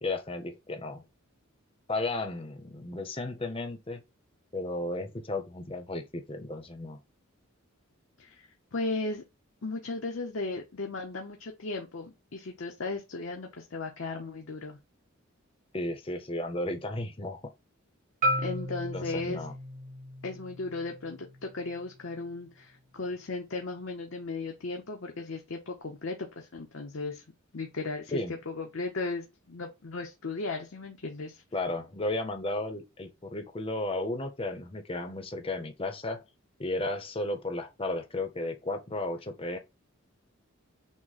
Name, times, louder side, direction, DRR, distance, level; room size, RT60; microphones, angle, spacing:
voice 1, 0.0-1.0 1.9-4.0 4.5-7.0 15.7-17.4 18.9-19.5 28.1-28.3 31.5-36.2 36.6-39.6, left 2 dB, 25° left, 0.7 m, -34 dB
voice 2, 8.2-9.2 9.6-14.8 18.4-19.5 20.2-27.2 27.5-31.4, left 3 dB, 65° left, 0.7 m, -36 dB
Marimba xylophone, 18.2-22.4, equal, 35° right, 1.1 m, -35 dB
6.2 x 2.1 x 4.0 m
head